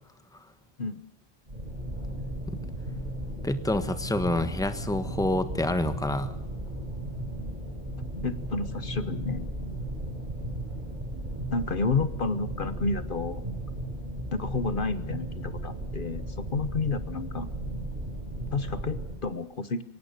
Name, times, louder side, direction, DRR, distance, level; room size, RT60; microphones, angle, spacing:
sound 1, 1.5-19.1, right 1 dB, 45° right, 6.1 m, -35 dB
voice 1, 3.4-6.3, left 1 dB, 5° left, 10 dB, 1.2 m, -27 dB
voice 2, 8.2-9.5 11.5-13.4 14.3-17.5 18.5-19.8, left 4 dB, 55° left, 13 dB, 1.2 m, -30 dB
23.0 x 18.5 x 6.7 m, 0.82 s
omnidirectional pair, 1.1 m